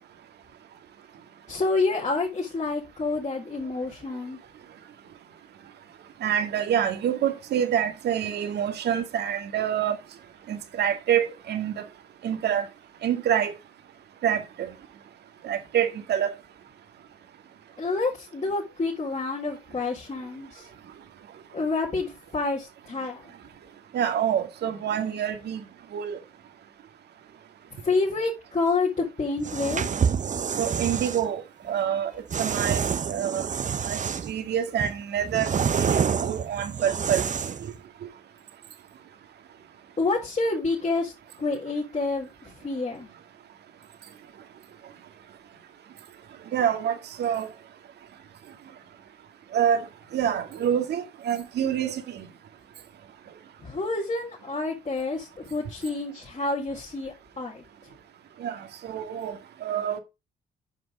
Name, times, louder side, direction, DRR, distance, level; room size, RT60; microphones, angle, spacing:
voice 1, 1.5-4.4 17.8-20.7 21.5-23.3 27.8-29.9 40.0-41.1 41.4-43.1 53.6-57.6, left 3 dB, 40° left, 4.2 m, -28 dB
voice 2, 6.2-10.0 10.5-11.8 12.2-12.6 13.0-13.5 14.2-14.7 15.4-16.3 23.9-25.6 25.9-26.2 30.6-31.4 31.7-32.1 32.4-33.4 33.8-34.0 34.2-37.2 46.5-47.5 49.5-49.8 50.1-52.3 58.4-60.0, right 9 dB, 75° right, 1.9 m, -27 dB
sound 1, 29.4-31.2 32.3-34.4 34.8-37.7, right 7 dB, 45° right, 0.8 m, -27 dB
9.3 x 6.0 x 5.2 m
supercardioid pair, 50°, 17 cm